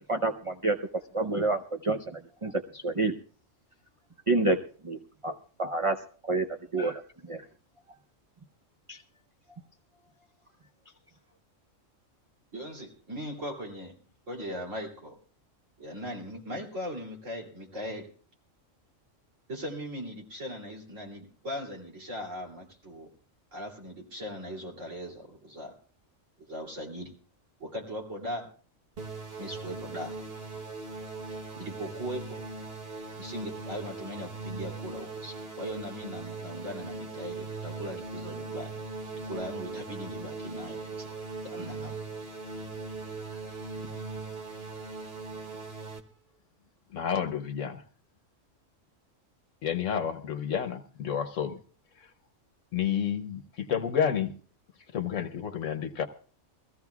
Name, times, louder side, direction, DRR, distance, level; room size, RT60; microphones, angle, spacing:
voice 1, 0.1-0.8 1.1-2.0 2.4-3.1 4.3-4.6 4.8-5.0 5.2-6.0 6.2-6.5 6.7-7.0 7.3-7.4 8.9-9.0, right 3 dB, 30° right, 4 dB, 0.6 m, -27 dB
voice 2, 12.5-13.9 14.3-15.2 15.8-18.1 19.5-23.1 23.5-25.8 26.4-27.1 27.6-28.5 29.4-30.2 31.5-32.4 33.2-38.8 39.3-41.1 41.4-42.0 43.3-44.0 44.7-45.0, equal, 70° right, -1 dB, 3.4 m, -39 dB
sound 1, 29.0-46.0, right 3 dB, 50° right, 1.3 m, -39 dB
voice 3, 46.9-47.8 49.6-51.6 52.0-52.1 52.7-54.4 54.9-56.1, left 8 dB, 75° left, 7 dB, 1.1 m, -30 dB
22.5 x 15.5 x 2.4 m, 0.43 s
omnidirectional pair, 1.3 m